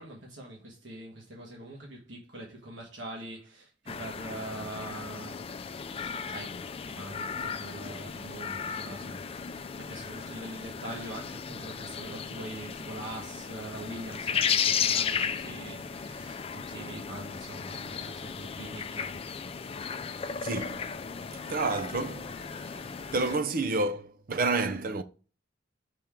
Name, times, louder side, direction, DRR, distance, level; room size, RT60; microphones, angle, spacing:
voice 1, 0.0-19.2, right 2 dB, 85° right, 1.5 m, -43 dB
sound 1, 3.9-23.4, left 7 dB, 30° left, 0.4 m, -35 dB
voice 2, 20.4-20.9 21.4-22.3 23.1-25.0, right 3 dB, 50° right, 0.6 m, -29 dB
5.8 x 3.7 x 4.4 m
head